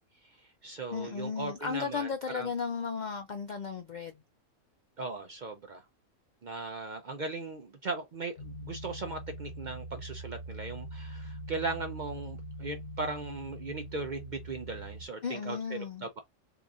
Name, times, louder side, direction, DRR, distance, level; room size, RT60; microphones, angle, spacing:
voice 1, 0.2-2.5 5.0-5.8 6.4-16.2, right 3 dB, 55° right, 0.5 m, -38 dB
voice 2, 0.9-4.2 15.2-16.1, left 5 dB, 75° left, 0.4 m, -35 dB
sound 1, 8.4-15.1, right 1 dB, 60° left, 1.1 m, -43 dB
3.8 x 2.9 x 2.4 m
omnidirectional pair, 1.3 m